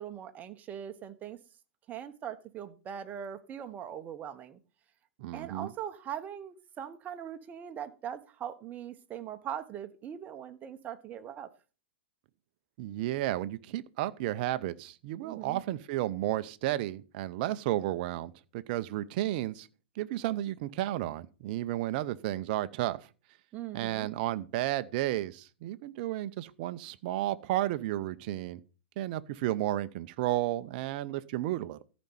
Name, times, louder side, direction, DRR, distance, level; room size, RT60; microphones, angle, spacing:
voice 1, 0.0-1.4 1.9-4.6 5.3-11.5 15.2-15.6 23.5-24.1, right 9 dB, 25° right, 1.2 m, -41 dB
voice 2, 5.2-5.7 12.8-19.7 20.0-23.1 23.7-28.6 29.0-31.8, right 14 dB, 45° right, 0.7 m, -32 dB
14.0 x 5.3 x 5.6 m
hypercardioid pair, 110°, 6 cm